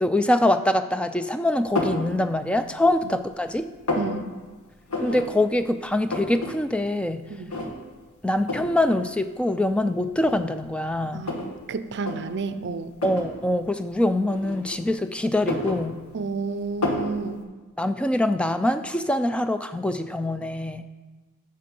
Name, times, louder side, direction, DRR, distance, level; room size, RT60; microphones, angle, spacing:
voice 1, 0.0-3.7 5.0-7.2 8.2-11.3 13.0-16.0 17.8-20.8, left 1 dB, 5° left, 10 dB, 0.3 m, -24 dB
sound 1, 1.8-2.1 2.6-3.3 3.5-4.1 4.9-5.3 5.6-5.7 5.9-6.5 6.9-7.0 7.5-8.0 8.5-8.8 9.6-9.7 10.2-11.5 11.9-12.2 13.0-13.3 14.3-14.9 15.3-16.3 16.8-17.1, left 2 dB, 75° left, 1.6 m, -29 dB
voice 2, 4.0-4.3 7.3-7.5 11.1-11.4 11.7-12.9 16.1-17.4, right 4 dB, 55° right, 11 dB, 0.5 m, -30 dB
10.0 x 6.7 x 5.3 m, 1.3 s
head